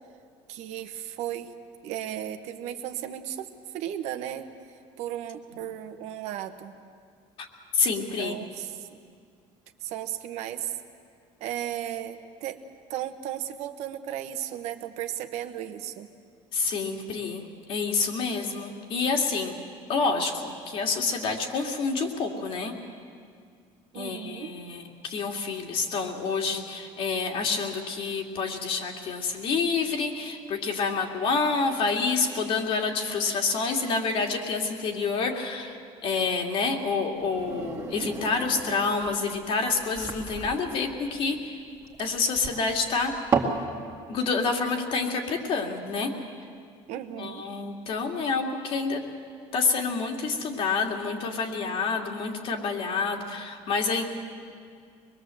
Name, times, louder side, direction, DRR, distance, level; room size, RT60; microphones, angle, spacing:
voice 1, 0.5-1.5 1.8-3.5 3.7-4.5 5.0-6.7 7.9-8.9 9.8-10.7 11.4-12.6 12.9-16.1 23.9-24.5 46.9-47.4, right 11 dB, 70° right, 7 dB, 1.4 m, -35 dB
voice 2, 7.7-8.4 16.5-19.6 19.9-22.8 24.0-35.8 36.0-41.5 42.0-43.2 44.1-46.1 47.2-49.0 49.5-54.0, left 4 dB, 50° left, 2 dB, 2.6 m, -28 dB
sound 1, 37.1-43.6, right 5 dB, 25° right, 2.2 m, -33 dB
24.0 x 22.0 x 7.8 m, 2.1 s
cardioid pair, 155°, 12 cm